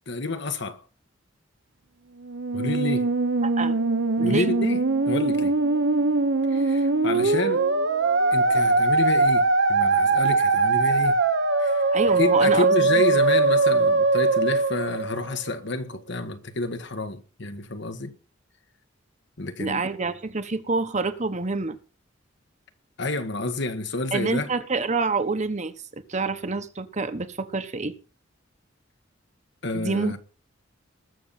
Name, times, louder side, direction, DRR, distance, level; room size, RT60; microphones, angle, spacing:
voice 1, 0.1-0.8 2.5-3.1 4.2-4.8 5.1-5.5 6.5-7.6 8.3-11.2 11.6-11.8 12.2-18.2 19.4-19.8 23.0-24.5 29.6-30.2, left 2 dB, 65° left, 1.6 m, -29 dB
Musical instrument, 2.2-15.6, right 3 dB, 65° right, 1.1 m, -21 dB
voice 2, 3.4-3.8 4.2-4.5 11.9-12.7 19.6-21.8 24.1-27.9 29.7-30.1, right 3 dB, 35° right, 1.1 m, -27 dB
20.5 x 7.0 x 4.3 m
head